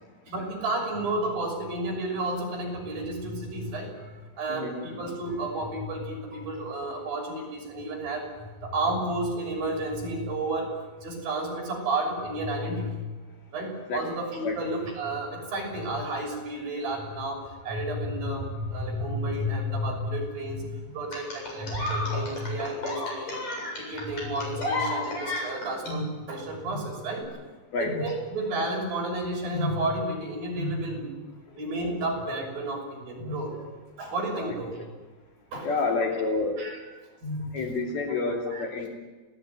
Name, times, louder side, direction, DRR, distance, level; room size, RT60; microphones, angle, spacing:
voice 1, 0.3-3.9 4.4-8.3 8.6-10.7 11.0-13.0 13.5-17.4 17.6-20.7 20.9-23.4 23.9-27.2 27.8-31.1 31.6-33.5 34.0-34.7 35.5-35.7 36.6-36.8 37.2-37.6 38.5-38.6, right 1 dB, 50° right, 0 dB, 7.9 m, -31 dB
voice 2, 4.5-5.0 13.9-14.2 14.4-14.6 27.7-28.0 33.6-33.8 34.4-34.9 35.6-36.6 37.5-38.9, left 3 dB, 55° left, 1 dB, 4.6 m, -29 dB
sound 1, 21.1-25.9 27.1-27.2, left 2 dB, 35° left, 9.0 m, -32 dB
27.0 x 18.5 x 9.4 m, 1.2 s
omnidirectional pair, 5.3 m